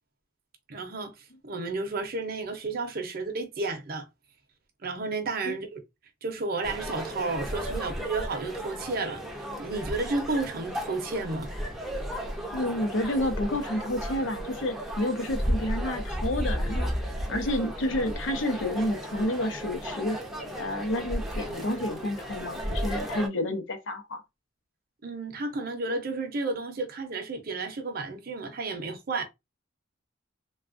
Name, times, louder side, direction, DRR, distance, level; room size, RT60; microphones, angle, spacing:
voice 1, 0.7-1.1 1.4-4.0 4.8-5.8 6.2-11.5 25.0-29.2, right 3 dB, 50° right, 0.6 m, -32 dB
sound 1, 6.6-23.3, equal, ahead, 0.5 m, -34 dB
voice 2, 12.5-16.9 17.3-20.2 20.5-24.2, left 1 dB, 70° left, 0.7 m, -30 dB
3.2 x 2.3 x 2.5 m
head